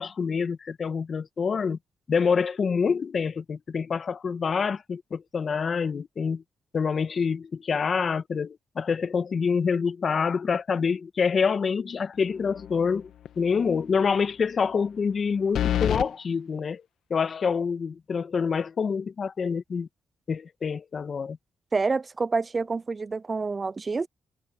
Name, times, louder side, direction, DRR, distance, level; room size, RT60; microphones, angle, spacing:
voice 1, 0.0-1.8 2.1-6.4 6.7-13.1 13.4-16.8 17.1-19.9 20.3-21.4, left 5 dB, 50° left, 1.6 m, -26 dB
sound 1, 12.4-12.9 13.3-13.4 15.5-16.1, left 10 dB, 75° left, 1.5 m, -26 dB
voice 2, 21.7-24.1, right 4 dB, 35° right, 0.6 m, -27 dB
supercardioid pair, 65°, 0 cm